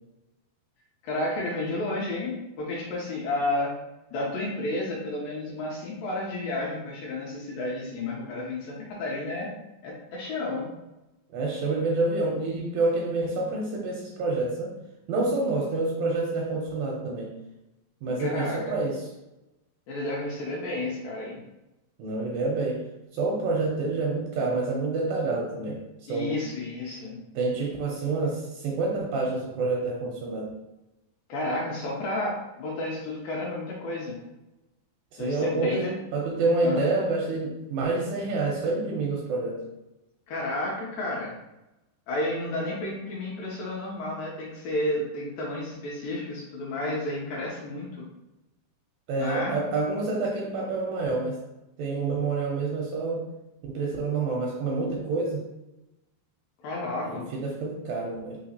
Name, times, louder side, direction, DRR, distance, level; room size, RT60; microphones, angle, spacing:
voice 1, 1.0-3.7 4.1-9.5 9.8-10.7 18.2-18.7 19.9-21.4 26.1-27.2 31.3-34.2 35.2-35.9 36.6-36.9 40.3-41.4 42.1-48.1 49.2-49.6 56.6-57.3, left 1 dB, 75° left, -4 dB, 2.2 m, -31 dB
voice 2, 11.3-14.7 15.1-17.3 18.0-19.1 22.0-22.9 23.1-26.4 27.4-30.5 35.1-39.6 49.1-51.4 51.8-53.3 53.6-55.4 57.0-58.4, right 3 dB, 80° right, -1 dB, 2.1 m, -28 dB
5.7 x 2.9 x 2.7 m, 0.97 s
omnidirectional pair, 4.6 m